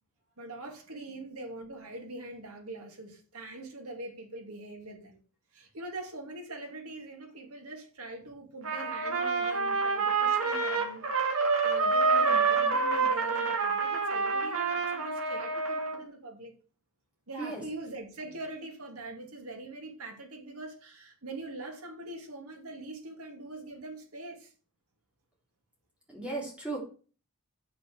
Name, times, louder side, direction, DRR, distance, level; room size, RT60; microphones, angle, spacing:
voice 1, 0.4-5.2 5.5-16.5 17.3-24.5, right 2 dB, 90° right, 2.6 m, -43 dB
Trumpet, 8.6-16.0, right 4 dB, 75° right, 1.7 m, -27 dB
voice 2, 26.1-26.8, right 3 dB, 5° right, 3.7 m, -35 dB
8.3 x 6.1 x 6.3 m
head